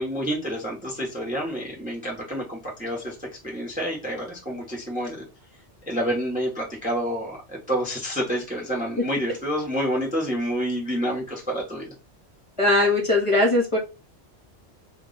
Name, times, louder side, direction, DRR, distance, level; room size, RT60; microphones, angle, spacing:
voice 1, 0.0-5.2 5.9-11.9, equal, 10° right, -2 dB, 0.8 m, -28 dB
voice 2, 12.6-13.8, left 2 dB, 30° left, -2 dB, 0.9 m, -20 dB
2.3 x 2.2 x 3.8 m, 0.30 s
omnidirectional pair, 1.2 m